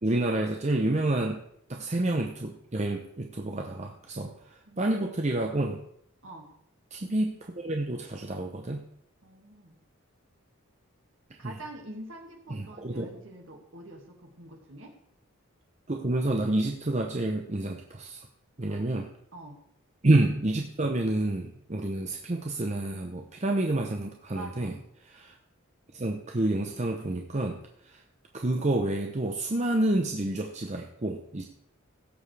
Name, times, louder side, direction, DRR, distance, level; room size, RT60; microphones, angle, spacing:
voice 1, 0.0-1.4 1.7-5.8 6.9-8.8 11.4-11.5 12.5-13.1 15.9-18.3 18.6-19.1 20.0-24.7 25.1-25.4 25.9-28.0 28.3-31.5, right 2 dB, 30° right, 3 dB, 0.7 m, -29 dB
voice 2, 4.7-5.1 6.2-6.5 9.2-9.8 11.4-15.0 18.6-18.9 19.3-19.6 24.3-24.8, right 1 dB, 60° right, 2 dB, 2.1 m, -45 dB
16.5 x 7.2 x 3.4 m, 0.68 s
head